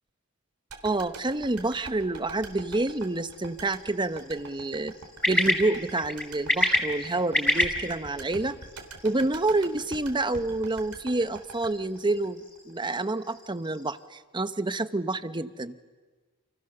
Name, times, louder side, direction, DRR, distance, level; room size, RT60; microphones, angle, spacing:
sound 1, 0.7-12.9 13.2-13.3, right 3 dB, 85° right, 3.4 m, -44 dB
voice 1, 0.8-4.9 5.3-8.6 9.0-15.8, right 2 dB, 20° right, 11 dB, 1.0 m, -28 dB
sound 2, 2.4-14.0, left 1 dB, 5° left, 4.0 m, -32 dB
29.5 x 29.0 x 6.8 m, 1.3 s
head